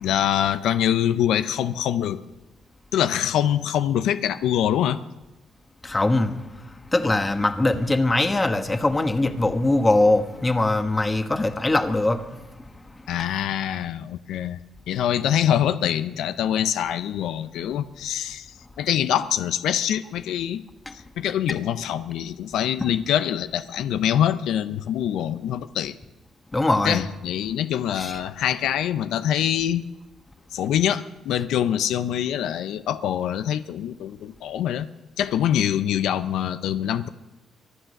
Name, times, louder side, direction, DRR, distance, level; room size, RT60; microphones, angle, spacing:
voice 1, 0.0-2.2 2.9-5.0 13.1-14.6 14.9-18.5 18.8-20.6 20.9-25.9 26.8-29.8 30.5-34.9 35.2-37.1, left 10 dB, 85° left, 0.5 m, -24 dB
voice 2, 5.8-6.4 6.9-12.2 20.9-21.0 26.5-27.0 27.9-28.2, left 2 dB, 20° left, 1.4 m, -21 dB
23.5 x 9.0 x 6.5 m
cardioid pair, 90°, 0 cm